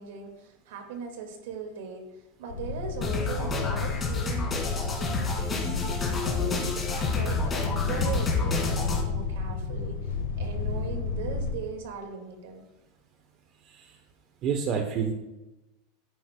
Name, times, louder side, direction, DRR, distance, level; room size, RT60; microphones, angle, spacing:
voice 1, 0.0-12.6, right 5 dB, 80° right, 4 dB, 2.0 m, -39 dB
sound 1, 2.5-11.5, left 5 dB, 90° left, 1.4 m, -31 dB
sound 2, 3.0-9.0, left 3 dB, 20° left, 2.3 m, -30 dB
voice 2, 14.4-15.1, right 6 dB, 40° right, 4 dB, 0.9 m, -28 dB
10.5 x 9.2 x 2.2 m, 1.0 s
supercardioid pair, 135°, 0 cm